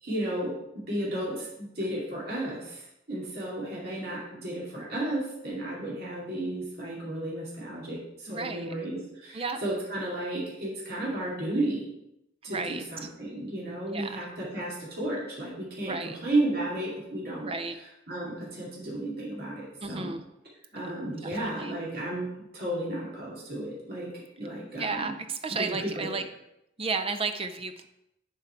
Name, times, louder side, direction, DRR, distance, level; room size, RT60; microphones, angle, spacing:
voice 1, 0.0-11.9 12.4-17.5 18.1-20.1 20.7-25.1 25.5-26.1, right 1 dB, 50° right, -5 dB, 2.5 m, -33 dB
voice 2, 8.3-8.7 9.3-9.6 12.5-12.8 13.9-14.3 15.8-16.2 17.4-17.7 19.8-20.2 20.7-20.8 21.2-21.8 24.7-26.2 26.8-27.8, right 4 dB, 30° right, 8 dB, 0.5 m, -33 dB
7.5 x 4.6 x 4.7 m, 0.83 s
head